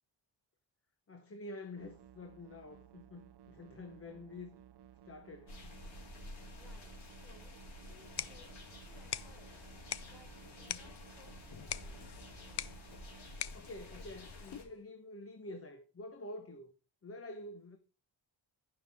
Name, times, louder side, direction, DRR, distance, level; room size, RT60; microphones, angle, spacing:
voice 1, 1.1-4.6 5.0-5.9 6.4-6.6 10.4-10.8 13.5-16.7 17.0-17.8, left 2 dB, 30° left, 1.0 m, -48 dB
sound 1, 1.8-13.3, right 9 dB, 60° right, 0.6 m, -58 dB
sound 2, 5.5-14.6, left 1 dB, 90° left, 4.4 m, -51 dB
voice 2, 6.5-12.6, left 1 dB, ahead, 4.2 m, -65 dB
sound 3, 7.9-14.8, left 11 dB, 60° left, 0.6 m, -45 dB
14.5 x 5.9 x 3.5 m
wide cardioid pair, 160°, 46 cm